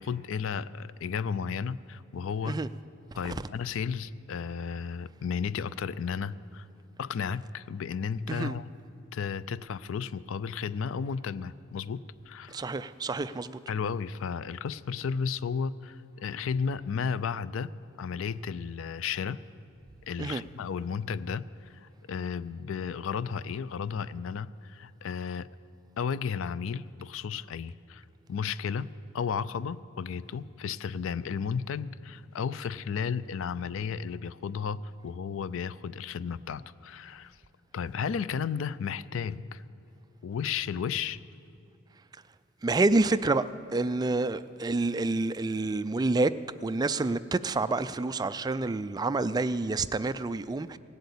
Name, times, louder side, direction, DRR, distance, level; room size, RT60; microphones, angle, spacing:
voice 1, 0.0-2.6 3.2-6.7 7.0-8.7 9.1-12.6 13.7-17.7 18.0-19.4 20.1-25.5 26.0-28.9 29.1-37.4 37.7-39.6 40.2-41.2, left 6 dB, 70° left, 0.4 m, -33 dB
voice 2, 12.5-13.6 20.2-20.4 42.6-46.3 46.6-50.8, right 3 dB, 20° right, 0.3 m, -28 dB
17.5 x 8.0 x 8.3 m
head